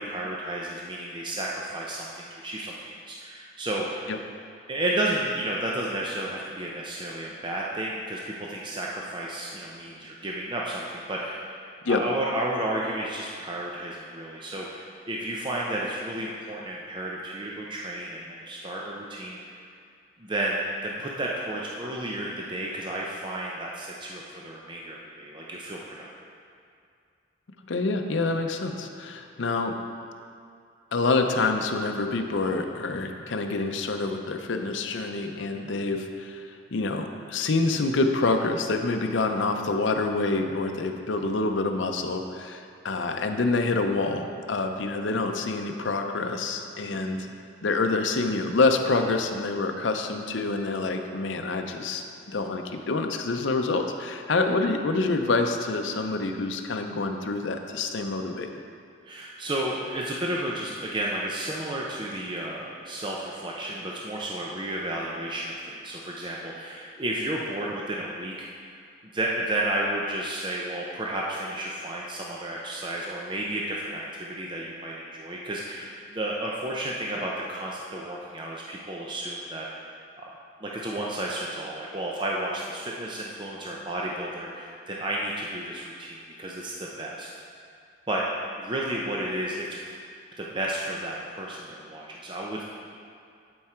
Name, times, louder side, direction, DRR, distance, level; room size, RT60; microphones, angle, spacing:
voice 1, 0.0-4.1 4.7-11.5 11.8-19.6 20.2-26.1 35.5-35.7 46.8-47.0 59.0-68.6 69.1-79.9 80.2-80.3 80.6-87.3 88.1-88.2 88.6-89.7 90.4-92.6, right 1 dB, 25° right, -3 dB, 0.6 m, -32 dB
voice 2, 27.7-29.7 30.9-36.4 36.7-47.3 47.6-58.5, left 3 dB, 75° left, 5 dB, 0.6 m, -27 dB
11.0 x 4.7 x 4.4 m, 2.3 s
head